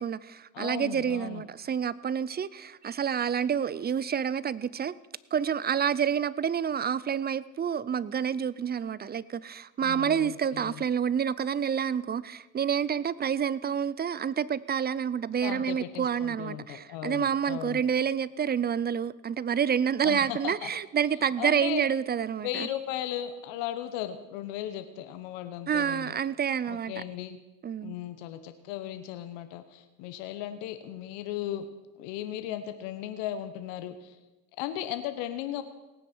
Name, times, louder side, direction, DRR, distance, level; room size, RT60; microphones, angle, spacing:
voice 1, 0.0-4.9 5.3-22.7 25.7-27.0 27.6-28.0, right 8 dB, 25° right, 19 dB, 0.4 m, -28 dB
voice 2, 0.5-1.4 9.8-10.8 15.4-17.8 20.0-20.7 21.4-21.8 22.4-26.1 26.7-27.4 27.8-31.7 32.0-34.1 34.6-35.6, left 12 dB, 75° left, 9 dB, 1.2 m, -36 dB
18.0 x 9.5 x 6.1 m, 1.1 s
supercardioid pair, 95°, 43 cm